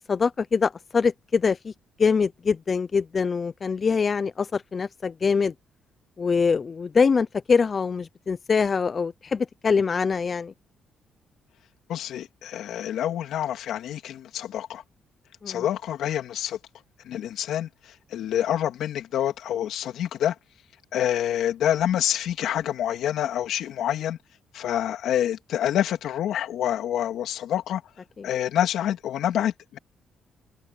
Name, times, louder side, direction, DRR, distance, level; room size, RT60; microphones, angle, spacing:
voice 1, 0.1-1.7 2.0-5.5 6.2-10.5 15.4-15.6, left 5 dB, 40° left, 0.5 m, -24 dB
voice 2, 11.9-14.8 15.5-16.6 17.0-20.3 20.9-24.2 24.5-27.8 28.2-29.8, left 11 dB, 75° left, 3.0 m, -27 dB
cardioid pair, 90°, 0 cm